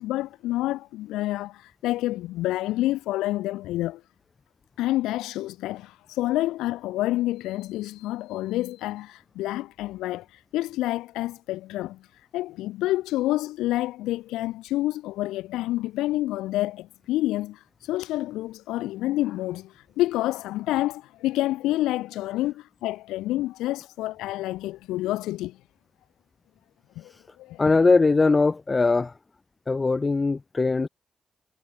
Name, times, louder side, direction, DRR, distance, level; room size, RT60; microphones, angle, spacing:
voice 1, 0.0-4.0 4.8-25.6 27.0-27.1 27.4-27.6, left 16 dB, 85° left, 5.9 m, -28 dB
voice 2, 27.6-29.1 29.7-30.9, left 3 dB, 40° left, 3.0 m, -21 dB
hypercardioid pair, 40°, 0 cm